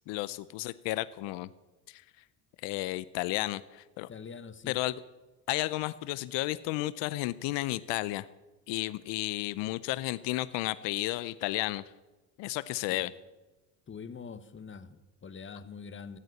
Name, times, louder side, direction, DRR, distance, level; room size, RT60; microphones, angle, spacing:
voice 1, 0.1-1.5 1.9-2.0 2.6-4.1 4.7-4.9 5.5-8.3 8.7-11.8 12.4-13.1, left 18 dB, 75° left, 17 dB, 0.6 m, -32 dB
voice 2, 4.1-4.8 12.9-13.0 13.9-16.2, left 5 dB, 25° left, 13 dB, 1.0 m, -44 dB
14.0 x 8.0 x 7.8 m, 1.1 s
supercardioid pair, 90°, 44 cm